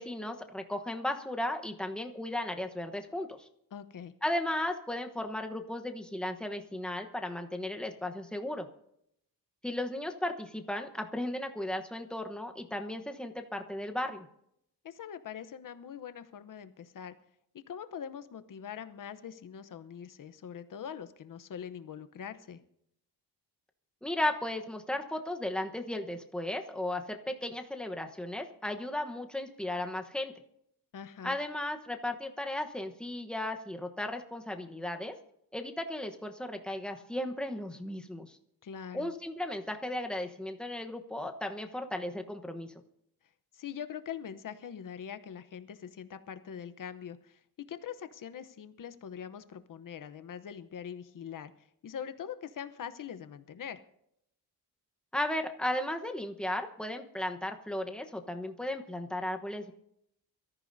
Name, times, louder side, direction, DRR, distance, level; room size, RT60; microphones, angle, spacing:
voice 1, 0.0-3.5 4.2-8.7 9.6-14.3 24.0-30.3 31.2-35.1 35.5-38.4 38.9-42.7 55.1-59.7, left 1 dB, ahead, 4 dB, 1.0 m, -35 dB
voice 2, 3.7-4.1 14.8-17.1 17.7-22.6 30.9-31.4 38.6-39.1 43.5-47.4 47.7-53.8, left 8 dB, 55° left, 11 dB, 0.9 m, -43 dB
23.5 x 14.0 x 2.7 m, 0.74 s
wide cardioid pair, 150°, 39 cm